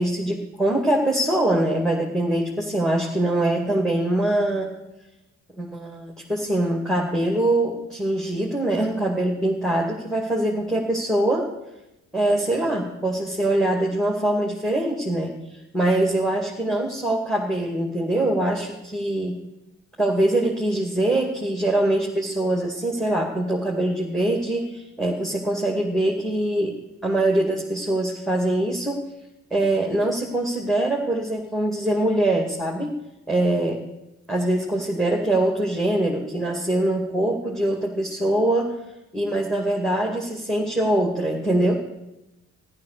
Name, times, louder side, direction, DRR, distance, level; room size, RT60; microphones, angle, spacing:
voice 1, 0.0-4.7 5.6-11.5 12.1-19.4 20.0-29.1 29.5-32.9 33.3-33.8 34.3-38.8 39.1-41.7, right 1 dB, ahead, -1 dB, 2.3 m, -23 dB
14.0 x 11.5 x 6.7 m, 0.93 s
cardioid pair, 90°, 30 cm